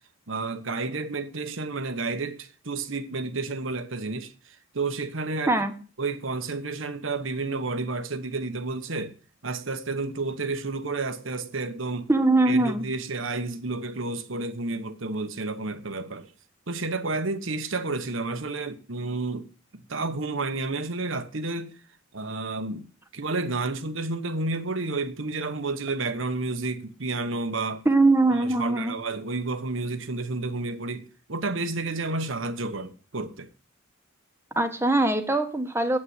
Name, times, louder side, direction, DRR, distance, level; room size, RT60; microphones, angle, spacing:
voice 1, 0.3-5.6 6.0-9.1 9.4-12.1 12.5-16.3 16.7-19.5 19.7-21.7 22.1-22.9 23.1-27.8 28.3-33.5, right 3 dB, 70° right, 1.2 m, -31 dB
voice 2, 12.1-12.8 27.8-29.0 34.5-36.0, right 2 dB, 10° right, 1.3 m, -21 dB
8.8 x 8.7 x 8.0 m
head